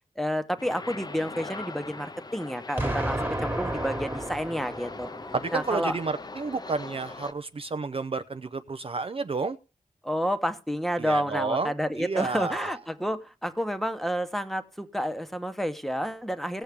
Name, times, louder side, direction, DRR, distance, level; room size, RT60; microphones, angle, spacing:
voice 1, 0.2-5.1 5.5-6.0 10.0-16.6, equal, ahead, 8 dB, 0.9 m, -30 dB
sound 1, 0.6-7.3, left 3 dB, 30° left, 0.6 m, -41 dB
Explosion, 2.8-5.7, right 1 dB, 15° right, 1.5 m, -32 dB
voice 2, 5.3-9.6 11.0-11.7 12.0-12.8, right 4 dB, 40° right, 11 dB, 0.5 m, -31 dB
17.5 x 7.1 x 3.5 m, 0.32 s
wide cardioid pair, 130°, 15 cm